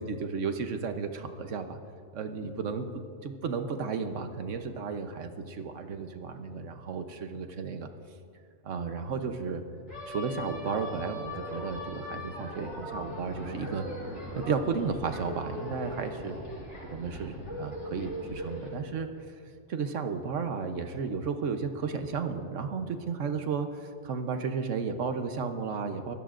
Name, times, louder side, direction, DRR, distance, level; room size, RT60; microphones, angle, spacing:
voice 1, 0.0-1.8 2.1-2.9 3.2-7.9 8.6-9.6 10.1-13.9 14.3-16.4 16.8-19.1 19.7-26.1, right 5 dB, 80° right, 7 dB, 1.2 m, -33 dB
sound 1, 9.9-18.7, left 1 dB, 75° left, 4.9 m, -39 dB
23.0 x 16.5 x 2.5 m, 2.4 s
omnidirectional pair, 1.2 m